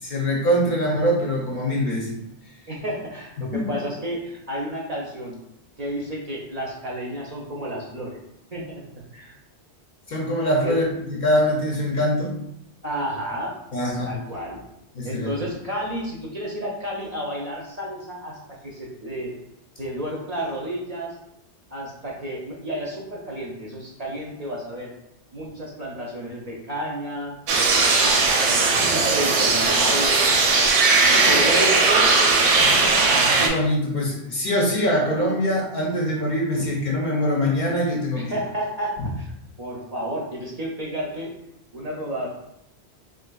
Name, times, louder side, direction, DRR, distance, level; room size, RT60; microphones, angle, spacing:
voice 1, 0.0-2.2 3.4-3.7 10.1-12.3 13.7-14.1 14.9-15.3 33.4-38.4, equal, 55° left, -2 dB, 0.6 m, -23 dB
voice 2, 2.7-5.4 5.8-8.2 8.5-8.8 9.1-9.4 10.6-10.8 12.8-13.6 14.0-14.7 15.0-19.3 19.8-21.1 21.7-24.9 25.3-27.4 28.0-30.4 31.1-32.6 33.0-33.3 38.2-39.3 39.6-41.3 41.7-42.3, equal, 50° right, -3 dB, 0.5 m, -31 dB
sound 1, 27.5-33.5, right 3 dB, 85° right, 0.8 m, -18 dB
3.6 x 2.5 x 2.2 m, 0.83 s
omnidirectional pair, 1.1 m